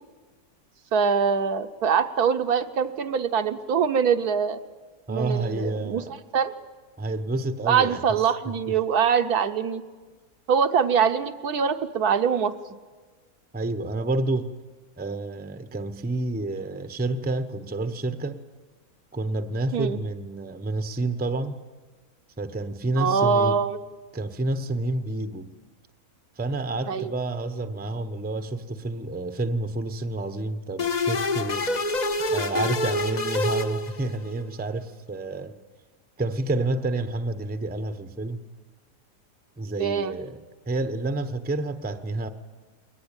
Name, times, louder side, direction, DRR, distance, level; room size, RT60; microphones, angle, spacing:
voice 1, 0.9-4.6 5.1-6.0 6.3-6.5 7.7-9.8 10.5-12.5 19.7-20.0 23.0-23.8 26.9-27.1 39.8-40.1, right 6 dB, 70° right, 1.4 m, -23 dB
voice 2, 5.1-6.1 7.0-8.8 13.5-14.5 15.0-18.4 19.1-21.6 22.4-23.6 24.1-25.5 26.4-31.8 32.3-35.6 36.2-38.4 39.6-40.4 40.7-42.3, right 2 dB, 10° right, 0.6 m, -29 dB
sound 1, 30.8-34.4, left 2 dB, 35° left, 0.7 m, -27 dB
21.5 x 19.0 x 8.9 m
omnidirectional pair, 1.7 m